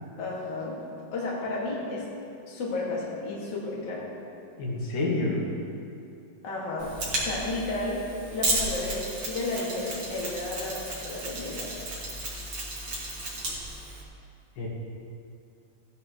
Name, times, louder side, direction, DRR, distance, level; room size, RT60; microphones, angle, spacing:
voice 1, 0.2-0.8 1.1-2.1 2.4-4.1 6.4-6.9 7.2-8.0 8.3-11.7, left 2 dB, 35° left, -5 dB, 2.2 m, -32 dB
voice 2, 4.6-5.4 14.6-14.7, left 2 dB, 85° left, -4 dB, 3.6 m, -28 dB
Mechanisms, 6.8-14.0, right 2 dB, 40° right, 2.3 m, -33 dB
15.5 x 10.5 x 3.1 m, 2.5 s
omnidirectional pair, 4.0 m